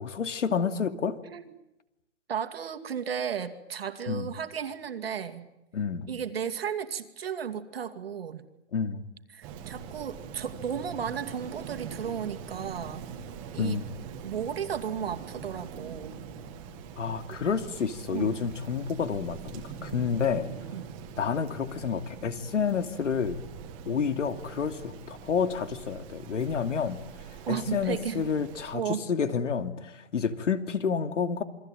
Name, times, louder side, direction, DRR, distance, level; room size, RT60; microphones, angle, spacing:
voice 1, 0.0-1.2 4.1-4.3 5.7-6.1 8.7-9.0 13.6-13.9 17.0-20.5 21.2-23.4 23.9-27.0 27.5-31.4, left 6 dB, 85° left, 10 dB, 2.8 m, -29 dB
voice 2, 2.3-5.4 6.1-8.4 9.3-13.0 13.5-13.8 14.2-16.1 18.1-18.4 20.7-20.9 27.4-28.3 28.7-29.0, right 7 dB, 55° right, 8 dB, 2.5 m, -34 dB
Rain, 9.4-28.7, right 7 dB, 15° right, 1.8 m, -43 dB
28.0 x 23.0 x 9.1 m, 0.92 s
hypercardioid pair, 180°, 36 cm